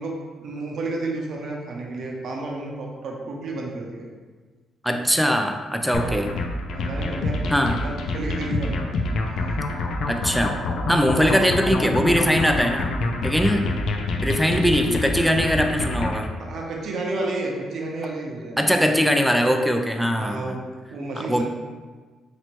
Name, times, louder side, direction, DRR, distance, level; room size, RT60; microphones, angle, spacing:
voice 1, 0.0-4.1 6.0-6.3 6.7-7.6 7.8-9.0 11.1-11.4 13.5-13.8 16.4-18.7 20.2-20.6 20.9-21.4, right 2 dB, 65° right, -1 dB, 0.8 m, -31 dB
voice 2, 4.8-6.4 7.5-7.8 10.1-10.6 10.9-12.9 13.2-13.7 14.2-16.3 18.6-20.6 21.2-21.4, equal, ahead, 5 dB, 0.4 m, -21 dB
sound 1, 5.9-16.3, left 2 dB, 70° left, 0.4 m, -27 dB
3.1 x 3.0 x 4.4 m, 1.4 s
cardioid pair, 90°, 0 cm